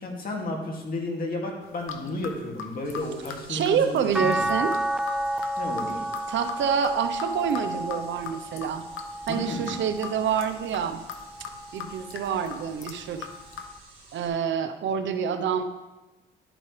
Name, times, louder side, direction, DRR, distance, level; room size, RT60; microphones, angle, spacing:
voice 1, 0.0-4.5 5.6-6.0 9.3-9.7, left 1 dB, 45° left, 0 dB, 2.3 m, -32 dB
sound 1, 1.6-13.7, left 7 dB, 80° left, 0.9 m, -41 dB
sound 2, 2.8-14.3, right 2 dB, 30° right, 3.2 m, -52 dB
voice 2, 3.5-4.7 6.3-8.8 9.3-11.0 11.4-13.3 14.1-15.6, right 7 dB, 70° right, 9 dB, 0.8 m, -27 dB
sound 3, 4.1-10.4 11.0-12.4 13.8-13.9, right 1 dB, 5° right, 0.3 m, -31 dB
12.0 x 9.0 x 3.3 m, 1.1 s
cardioid pair, 90°, 20 cm